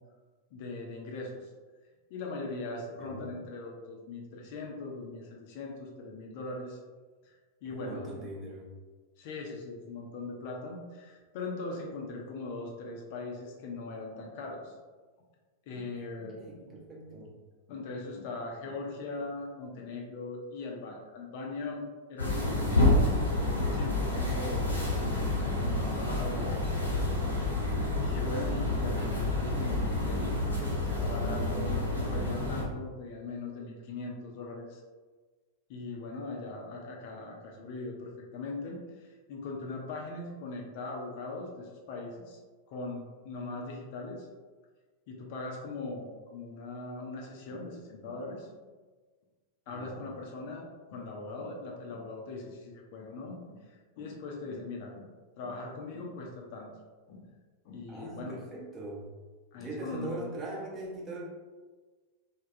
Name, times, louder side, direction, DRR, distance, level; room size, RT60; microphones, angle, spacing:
voice 1, 0.5-1.5 2.1-6.8 7.2-7.4 7.6-8.1 9.2-14.8 15.7-16.4 16.7-16.8 17.1-17.2 17.7-23.2 23.7-27.0 28.0-34.8 35.7-42.4 42.7-44.3 45.1-48.5 49.7-55.1 55.4-56.7 57.1-57.2 57.6-58.4 59.5-60.3, left 3 dB, 50° left, -1 dB, 0.5 m, -40 dB
voice 2, 3.0-3.3 7.6-8.7 11.8-11.9 16.4-17.4 28.6-28.7 49.7-50.1 57.9-59.1 59.6-61.3, right 2 dB, 25° right, -4 dB, 0.8 m, -41 dB
sound 1, 22.2-32.6, left 2 dB, 85° left, 0.7 m, -29 dB
3.3 x 2.1 x 2.5 m, 1.4 s
figure-of-eight pair, 90°, 0 cm